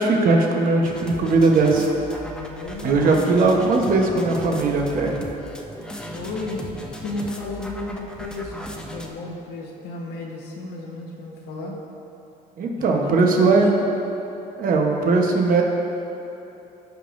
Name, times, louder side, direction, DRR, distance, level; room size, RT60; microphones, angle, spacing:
voice 1, 0.0-1.9 2.8-5.2 12.6-13.8 14.6-15.6, right 3 dB, 55° right, 1 dB, 1.1 m, -19 dB
sound 1, 0.8-9.1, equal, 5° left, 0.7 m, -37 dB
voice 2, 2.2-3.3 6.1-6.7 7.0-11.8 12.8-13.9, left 2 dB, 75° left, -2 dB, 1.2 m, -33 dB
15.0 x 5.2 x 2.6 m, 2.9 s
cardioid pair, 110°, 17 cm